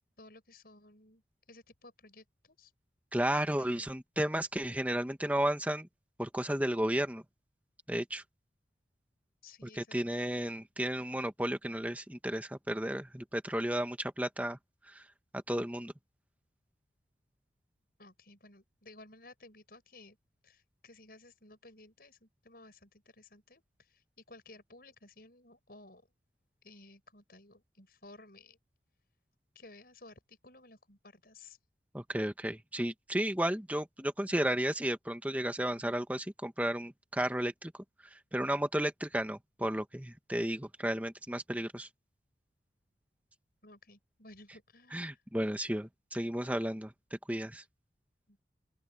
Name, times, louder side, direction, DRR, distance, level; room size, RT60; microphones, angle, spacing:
voice 1, 0.2-1.2 1.5-2.7 3.5-3.9 9.4-10.0 18.0-20.2 20.4-26.0 26.6-28.6 29.5-31.6 43.6-45.2 48.3-48.4, left 2 dB, 55° left, 7.5 m, -56 dB
voice 2, 3.1-5.9 6.2-7.2 7.9-8.2 9.8-14.6 14.9-15.0 15.5-15.9 31.9-37.7 38.3-41.9 44.9-46.9 47.3-47.6, right 1 dB, 10° right, 1.3 m, -33 dB
open air
head